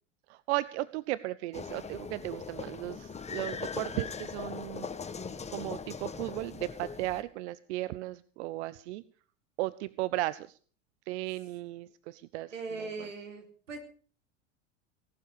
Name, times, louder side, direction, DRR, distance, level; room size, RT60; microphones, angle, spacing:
voice 1, 0.3-4.9 5.5-9.0 9.6-10.6 11.1-13.1, right 17 dB, 65° right, 18 dB, 0.7 m, -36 dB
Milkmaids (lecheras), 1.5-7.2, left 5 dB, 15° left, 1.7 m, -40 dB
voice 2, 12.5-13.8, right 3 dB, 90° right, 4 dB, 4.1 m, -40 dB
17.5 x 12.0 x 6.7 m, 0.43 s
hypercardioid pair, 85°, 37 cm